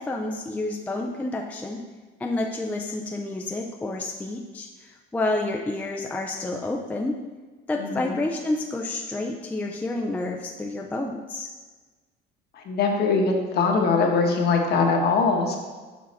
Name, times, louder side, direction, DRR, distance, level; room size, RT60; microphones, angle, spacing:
voice 1, 0.0-1.8 2.2-7.2 7.7-11.5, left 2 dB, 5° left, 1 dB, 0.4 m, -29 dB
voice 2, 7.8-8.2 12.5-15.6, left 4 dB, 50° left, 2 dB, 1.1 m, -22 dB
6.3 x 6.1 x 4.1 m, 1.3 s
cardioid pair, 145°, 21 cm